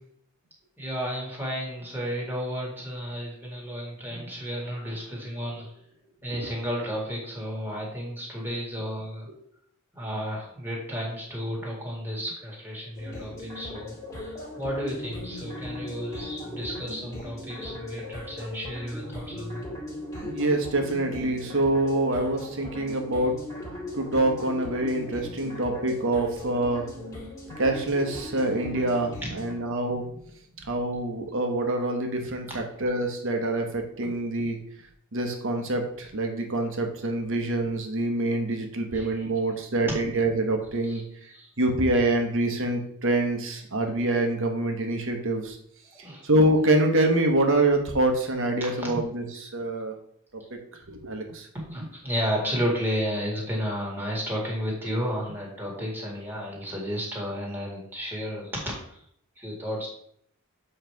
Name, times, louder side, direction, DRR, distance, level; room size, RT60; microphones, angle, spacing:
voice 1, 0.8-5.7 6.2-9.3 9.9-19.6 29.2-29.3 34.0-34.1 38.9-39.2 40.8-41.0 41.3-41.5 45.9-46.2 48.6-49.0 51.5-58.6 58.9-59.0 59.4-59.9, equal, 10° right, -3 dB, 2.1 m, -32 dB
sound 1, 12.9-29.5, left 1 dB, 15° left, 2.0 m, -38 dB
voice 2, 20.2-23.3 23.9-26.8 27.6-30.0 30.7-34.6 35.1-41.0 41.6-45.6 46.2-49.2 49.5-49.9 50.9-51.5, right 2 dB, 65° right, 4 dB, 1.1 m, -25 dB
7.3 x 3.2 x 4.5 m, 0.68 s
head